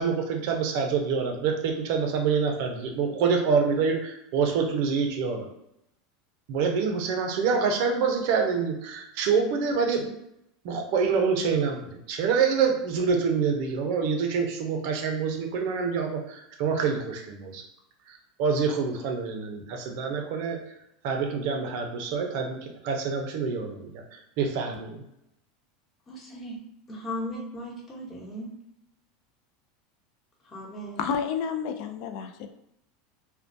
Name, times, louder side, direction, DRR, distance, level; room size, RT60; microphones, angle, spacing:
voice 1, 0.0-5.5 6.5-10.1 10.6-17.6 18.1-20.6 21.0-23.9 24.4-25.0, right 5 dB, 65° right, 3 dB, 0.5 m, -26 dB
voice 2, 26.1-26.6 26.9-28.5 30.4-31.0, equal, 30° left, -3 dB, 0.9 m, -37 dB
voice 3, 31.0-32.5, left 6 dB, 60° left, 8 dB, 0.3 m, -30 dB
2.2 x 2.1 x 2.6 m, 0.81 s
hypercardioid pair, 100°, 0 cm